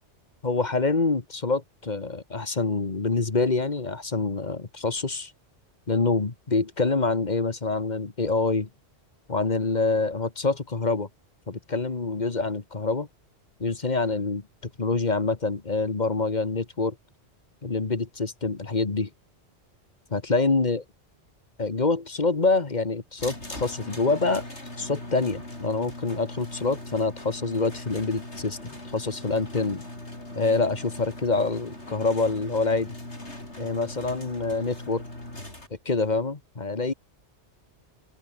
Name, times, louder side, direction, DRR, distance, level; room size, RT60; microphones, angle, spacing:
voice 1, 0.4-5.3 5.9-8.7 9.3-11.1 11.5-13.1 13.6-14.4 14.8-16.9 17.6-19.1 20.1-20.8 21.6-24.4 24.8-29.9 30.3-32.9 33.6-35.0 35.8-36.9, left 3 dB, 40° left, 1.7 m, -26 dB
sound 1, 23.2-35.7, left 1 dB, 75° left, 7.7 m, -40 dB
open air
omnidirectional pair, 1.2 m